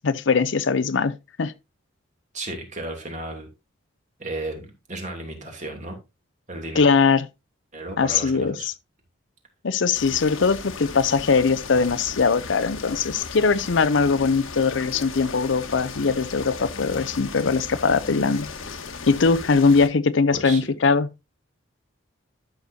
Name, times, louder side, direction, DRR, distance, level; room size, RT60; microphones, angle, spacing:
voice 1, 0.0-1.5 6.7-7.3 8.0-8.7 9.6-18.5 19.1-21.1, left 4 dB, 65° left, 0.6 m, -21 dB
voice 2, 2.3-3.5 4.2-6.0 6.5-6.8 7.7-8.7 20.3-20.6, right 2 dB, 35° right, 2.8 m, -34 dB
sound 1, 9.9-19.9, left 4 dB, 90° left, 1.3 m, -36 dB
12.5 x 6.6 x 2.7 m
head